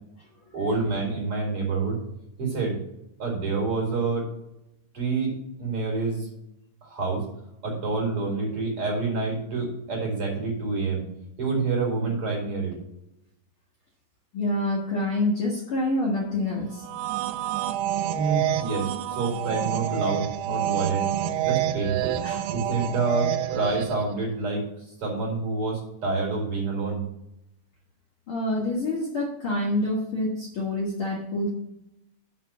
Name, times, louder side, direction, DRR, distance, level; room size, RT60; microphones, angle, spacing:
voice 1, 0.5-2.0 2.4-2.8 3.2-4.3 4.9-6.3 6.8-7.2 7.6-11.0 11.4-12.8 18.1-21.1 21.4-22.2 22.5-24.7 25.0-27.0, right 3 dB, 40° right, -1 dB, 2.8 m, -27 dB
voice 2, 14.3-16.8 22.2-22.5 28.3-31.5, left 1 dB, 80° left, -4 dB, 1.2 m, -27 dB
sound 1, 16.8-24.1, right 12 dB, 90° right, 2.8 m, -28 dB
6.0 x 5.9 x 7.1 m, 0.83 s
omnidirectional pair, 4.9 m